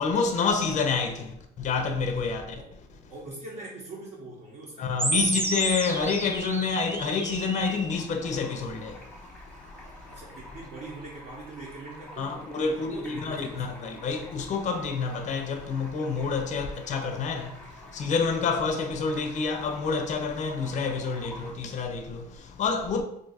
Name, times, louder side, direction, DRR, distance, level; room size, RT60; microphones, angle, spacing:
voice 1, 0.0-2.6 4.8-9.1 12.2-23.0, left 5 dB, 45° left, 0.5 m, -28 dB
voice 2, 3.1-5.0 10.1-13.8, right 2 dB, 50° right, 0.9 m, -43 dB
sound 1, 5.0-8.0, right 2 dB, 15° right, 0.3 m, -30 dB
Stream, 7.9-21.5, equal, 5° left, 0.8 m, -48 dB
2.6 x 2.3 x 4.0 m
cardioid pair, 110°, 17 cm